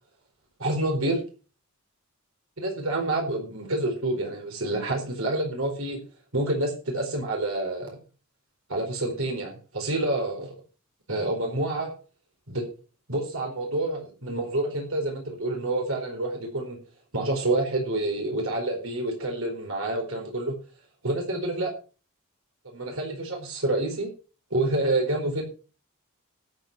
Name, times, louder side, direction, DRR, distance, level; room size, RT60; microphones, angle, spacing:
voice 1, 0.6-1.2 2.6-6.0 6.3-8.0 8.7-10.5 11.1-11.9 12.5-12.7 13.1-16.8 17.1-20.5 21.0-21.7 22.7-24.1 24.5-25.4, right 2 dB, 65° right, 2 dB, 4.5 m, -28 dB
13.0 x 8.5 x 6.2 m, 0.36 s
head